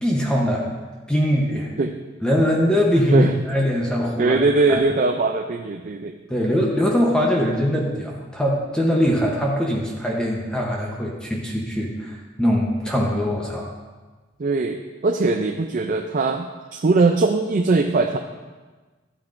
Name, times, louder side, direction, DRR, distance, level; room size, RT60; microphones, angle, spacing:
voice 1, 0.0-0.7 1.1-1.7 2.2-4.4 4.7-4.8 6.3-13.7, equal, 5° left, -2 dB, 0.9 m, -22 dB
voice 2, 4.2-6.1 14.4-16.5 16.7-18.2, right 3 dB, 45° right, 5 dB, 0.4 m, -20 dB
12.5 x 8.6 x 2.6 m, 1.3 s
head